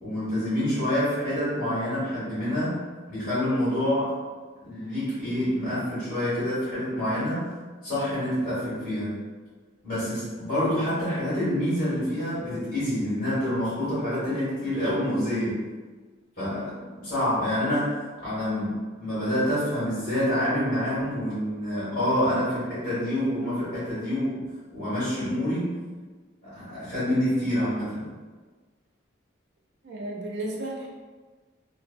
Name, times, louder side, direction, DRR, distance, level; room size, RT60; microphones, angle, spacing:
voice 1, 0.0-4.1 4.6-7.5 7.8-9.2 9.8-15.6 16.4-18.0 18.2-24.4 24.7-25.8 26.4-28.1, left 1 dB, 45° left, -12 dB, 1.4 m, -27 dB
voice 2, 29.8-30.9, right 1 dB, 60° right, -2 dB, 0.5 m, -33 dB
3.1 x 2.1 x 2.5 m, 1.4 s
head